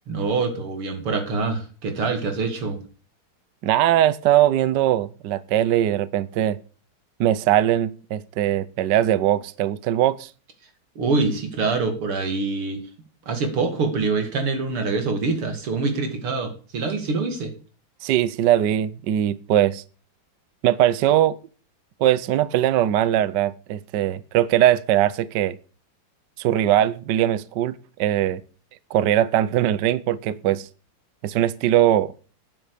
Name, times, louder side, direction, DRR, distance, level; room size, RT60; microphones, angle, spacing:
voice 1, 0.1-2.8 11.0-12.8 13.3-17.5, right 3 dB, 85° right, 3.3 m, -25 dB
voice 2, 3.6-6.6 7.2-10.3 18.0-19.8 20.6-21.4 22.0-25.6 26.4-28.4 28.9-30.7 31.2-32.1, right 12 dB, 65° right, 1.2 m, -20 dB
12.5 x 9.3 x 5.0 m
omnidirectional pair, 2.3 m